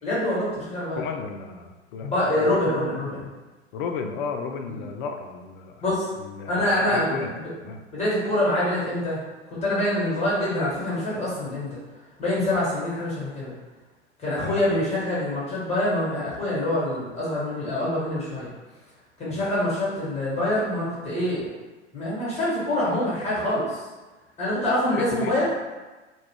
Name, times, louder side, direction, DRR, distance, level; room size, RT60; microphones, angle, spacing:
voice 1, 0.0-1.0 2.0-3.3 4.8-4.9 5.8-6.1 6.5-7.5 7.9-9.2 9.5-11.7 12.2-13.5 14.2-18.5 19.2-21.5 21.9-23.8 24.4-25.4, left 1 dB, 20° left, -7 dB, 1.2 m, -25 dB
voice 2, 0.9-2.1 2.4-2.6 3.7-5.8 6.2-7.3 7.6-7.8 14.4-14.6 19.3-19.5 25.0-25.4, left 5 dB, 50° left, 4 dB, 0.4 m, -33 dB
2.3 x 2.2 x 3.4 m, 1.2 s
figure-of-eight pair, 90°, 35 cm